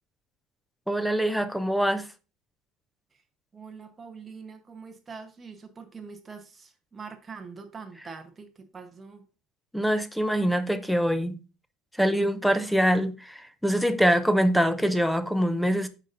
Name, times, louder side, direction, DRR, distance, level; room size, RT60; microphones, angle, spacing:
voice 1, 0.9-2.1 9.7-11.4 12.0-15.9, equal, ahead, 0.4 m, -24 dB
voice 2, 3.5-9.3, right 5 dB, 15° right, 0.9 m, -44 dB
8.3 x 5.2 x 2.5 m
cardioid pair, 165°, 0 cm